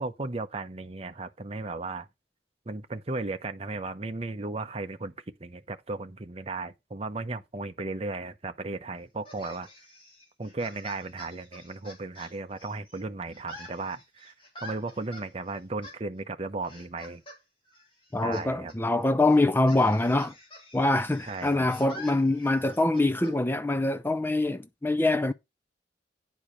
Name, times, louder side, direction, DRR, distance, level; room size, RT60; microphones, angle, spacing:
voice 1, 0.0-2.1 2.7-5.1 5.4-9.7 10.4-17.2 18.2-18.7 21.2-21.7, right 3 dB, 35° right, 0.8 m, -35 dB
sound 1, 9.2-13.0 13.3-15.3 15.8-16.0 16.6-17.4 17.7-18.4 18.7-18.8 19.3-23.3, equal, 30° left, 3.1 m, -47 dB
voice 2, 18.1-20.3 20.7-25.3, left 2 dB, 10° left, 0.4 m, -24 dB
9.9 x 4.8 x 5.2 m
head